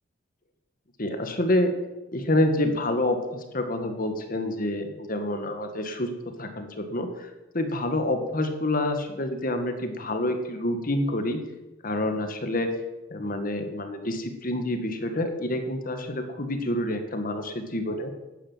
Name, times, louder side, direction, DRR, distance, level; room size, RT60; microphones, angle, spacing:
voice 1, 1.0-1.7 2.1-6.1 6.4-7.3 7.5-11.4 11.8-12.7 13.1-18.1, left 1 dB, 45° left, 6 dB, 1.7 m, -27 dB
11.5 x 9.6 x 7.4 m, 1.1 s
head